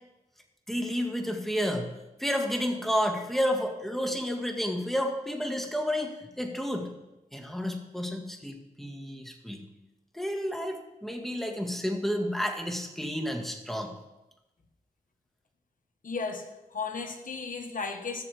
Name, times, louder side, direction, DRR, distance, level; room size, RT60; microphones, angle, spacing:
voice 1, 0.7-1.9 2.2-6.9 7.3-9.6 10.1-13.9, equal, ahead, 1.9 m, -31 dB
voice 2, 16.0-18.2, left 4 dB, 60° left, 1.4 m, -35 dB
15.0 x 6.6 x 3.6 m
cardioid pair, 45°, 16 cm